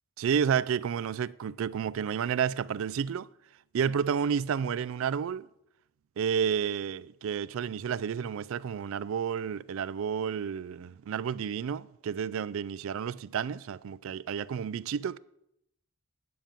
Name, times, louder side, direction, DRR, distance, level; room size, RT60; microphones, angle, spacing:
voice 1, 0.2-3.3 3.7-5.5 6.2-15.2, right 7 dB, 65° right, 0.3 m, -31 dB
9.5 x 5.3 x 7.3 m
head